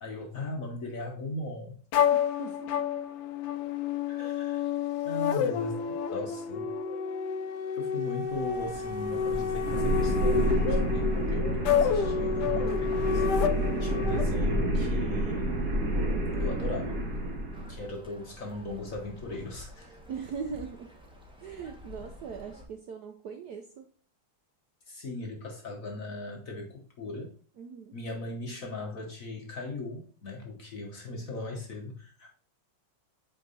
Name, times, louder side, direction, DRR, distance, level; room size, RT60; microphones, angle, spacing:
voice 1, 0.0-1.7 4.1-4.6 5.0-6.7 7.8-13.2 13.8-15.7 16.4-17.0 17.7-19.9 24.9-27.3 27.9-32.3, left 2 dB, 50° left, 1 dB, 1.1 m, -38 dB
sound 1, 1.9-14.2, left 7 dB, 75° left, 1.0 m, -29 dB
voice 2, 2.1-2.7 13.7-14.1 20.1-20.9 21.4-23.9 27.6-27.9, right 6 dB, 70° right, 5 dB, 0.9 m, -40 dB
sound 2, 8.2-17.8, equal, 50° right, 1.7 m, -29 dB
sound 3, 17.5-22.7, equal, 5° right, 0.8 m, -49 dB
7.8 x 3.7 x 4.0 m, 0.43 s
omnidirectional pair, 2.3 m